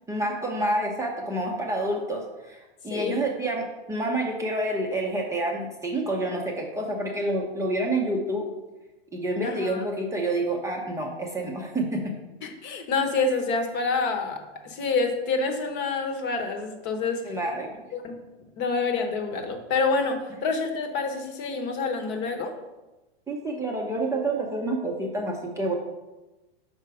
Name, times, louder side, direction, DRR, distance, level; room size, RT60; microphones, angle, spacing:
voice 1, 0.1-8.5 9.1-12.2 17.2-17.7 23.3-25.7, right 1 dB, 10° right, -1 dB, 0.7 m, -28 dB
voice 2, 2.9-3.2 9.4-9.9 12.4-17.2 17.9-18.2 18.6-22.6, left 4 dB, 35° left, 4 dB, 1.0 m, -27 dB
6.0 x 4.5 x 4.8 m, 1.1 s
hypercardioid pair, 130°, 30 cm